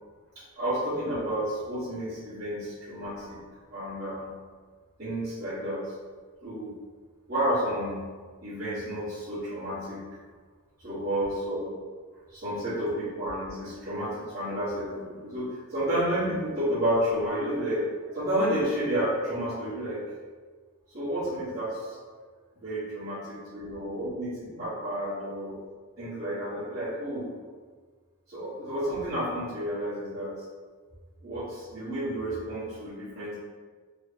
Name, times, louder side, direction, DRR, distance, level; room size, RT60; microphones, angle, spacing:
voice 1, 0.6-3.4 3.7-4.3 5.0-5.9 6.4-6.7 7.3-8.0 8.4-10.0 10.8-11.8 12.3-17.8 18.1-20.0 20.9-22.0 22.6-25.6 26.0-27.3 28.3-30.3 31.2-33.3, right 1 dB, 45° right, -16 dB, 1.2 m, -31 dB
3.0 x 2.8 x 3.3 m, 1.5 s
head